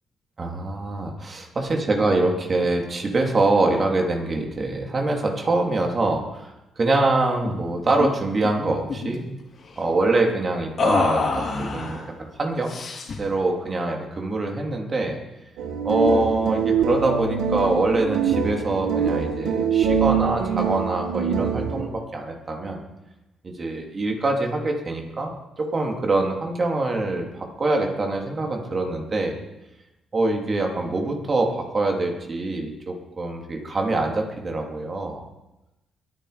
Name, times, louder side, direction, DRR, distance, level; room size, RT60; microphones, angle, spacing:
voice 1, 0.4-9.3 9.8-12.7 13.2-15.2 15.8-22.8 23.4-29.3 30.1-35.2, right 2 dB, 35° right, 1 dB, 3.5 m, -24 dB
sound 1, 7.4-7.6 7.9-8.1 8.4-9.2 10.8-12.0 12.7-13.3, left 4 dB, 50° left, 4.0 m, -26 dB
sound 2, 15.6-21.9, right 6 dB, 90° right, 2.0 m, -24 dB
22.5 x 10.0 x 5.3 m, 0.98 s
cardioid pair, 90°, 0 cm